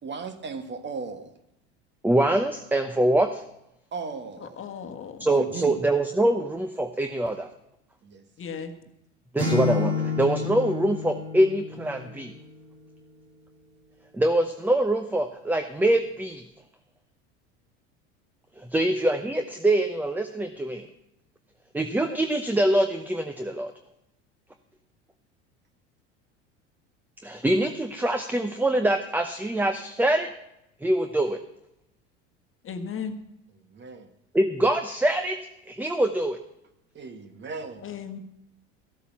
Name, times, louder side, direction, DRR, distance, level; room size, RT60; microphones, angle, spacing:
voice 1, 0.0-1.3 3.9-4.7 5.3-5.8 8.0-8.2 33.7-34.1 36.9-37.9, right 4 dB, 30° right, 9 dB, 1.5 m, -36 dB
voice 2, 2.0-3.4 5.2-7.5 9.3-12.3 14.1-16.4 18.6-20.9 21.7-23.7 27.2-30.3 30.8-31.4 34.3-35.4 35.7-36.4, right 1 dB, 5° right, 7 dB, 0.8 m, -24 dB
voice 3, 4.4-5.3 8.4-8.7 32.6-33.2 37.8-38.2, left 6 dB, 35° left, 7 dB, 1.5 m, -35 dB
Acoustic guitar / Strum, 9.4-12.5, left 4 dB, 80° right, 2.8 m, -29 dB
13.5 x 8.3 x 5.9 m, 0.83 s
hypercardioid pair, 80°, 35 cm